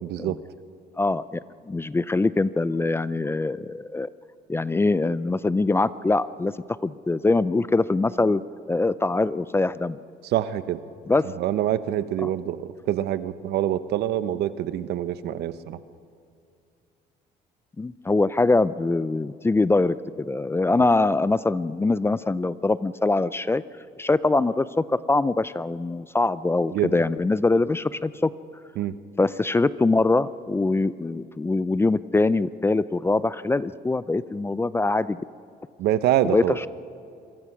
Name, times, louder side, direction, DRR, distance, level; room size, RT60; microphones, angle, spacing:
voice 1, 0.0-0.4 10.2-10.8 11.2-15.8 26.7-27.0 28.8-29.0 35.8-36.6, right 12 dB, 75° right, 13 dB, 1.0 m, -26 dB
voice 2, 1.0-4.1 4.5-6.5 6.8-8.4 8.7-10.0 11.1-11.3 12.2-12.3 17.8-23.6 24.0-28.3 29.2-35.2 36.3-36.4, left 3 dB, 15° left, 17 dB, 0.5 m, -23 dB
26.0 x 23.5 x 6.1 m, 2.4 s
cardioid pair, 110°, 17 cm